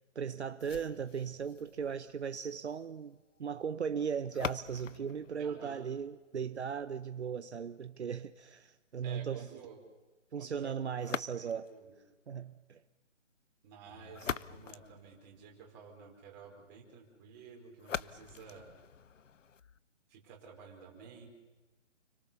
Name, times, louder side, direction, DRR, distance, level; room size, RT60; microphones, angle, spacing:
voice 1, 0.1-9.5 10.3-11.7 12.3-12.8, right 7 dB, 60° right, 1.1 m, -37 dB
sound 1, 0.6-6.6 11.0-11.8 13.8-15.8 17.8-19.8, left 7 dB, 80° left, 1.0 m, -44 dB
voice 2, 5.4-5.8 9.0-9.9 10.3-11.9 13.6-18.7 20.1-21.3, right 6 dB, 15° right, 4.7 m, -52 dB
30.0 x 23.0 x 7.1 m
hypercardioid pair, 175°, 37 cm